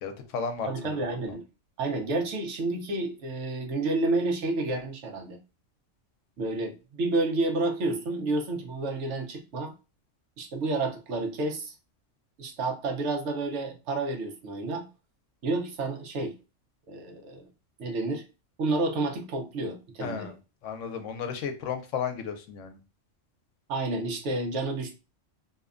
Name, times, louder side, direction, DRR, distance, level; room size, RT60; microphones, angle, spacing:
voice 1, 0.0-1.2 20.0-20.3 20.6-22.8, left 6 dB, 80° left, 6 dB, 0.9 m, -34 dB
voice 2, 0.6-1.4 1.8-5.4 6.4-9.7 10.4-11.7 12.4-14.8 15.4-16.3 16.9-17.5 17.8-18.2 18.6-20.3 23.7-24.9, right 2 dB, 70° right, 3 dB, 1.0 m, -30 dB
2.7 x 2.1 x 2.4 m, 0.30 s
omnidirectional pair, 1.3 m